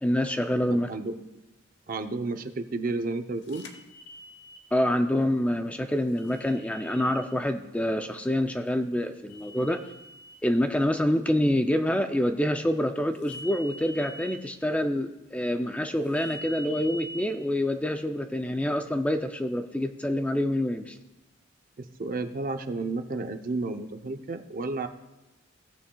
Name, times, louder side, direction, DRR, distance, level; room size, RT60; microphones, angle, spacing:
voice 1, 0.0-0.9 4.7-9.8 10.4-21.0, left 1 dB, 5° left, 7 dB, 0.4 m, -26 dB
voice 2, 1.9-3.7 21.8-24.9, right 3 dB, 45° right, 8 dB, 0.6 m, -32 dB
sound 1, 3.5-4.6 6.2-7.3 9.3-10.4 13.2-14.4 16.1-17.2, left 1 dB, 60° left, 1.0 m, -43 dB
16.5 x 8.5 x 2.3 m, 1.0 s
head